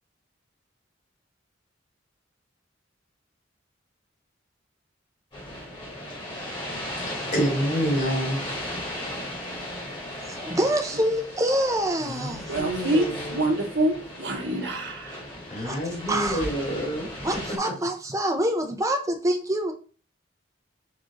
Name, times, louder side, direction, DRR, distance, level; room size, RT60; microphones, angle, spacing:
sound 1, 5.3-17.6, left 1 dB, 25° left, 1.7 m, -36 dB
voice 1, 7.1-8.4 12.0-13.4 15.5-17.7, equal, 45° left, -4 dB, 2.3 m, -28 dB
voice 2, 10.2-12.4 15.6-15.8 16.1-16.4 17.2-19.7, right 1 dB, 15° right, 5 dB, 0.6 m, -26 dB
voice 3, 12.5-15.2, right 1 dB, 60° right, 2 dB, 1.1 m, -26 dB
4.9 x 2.6 x 3.8 m, 0.39 s
head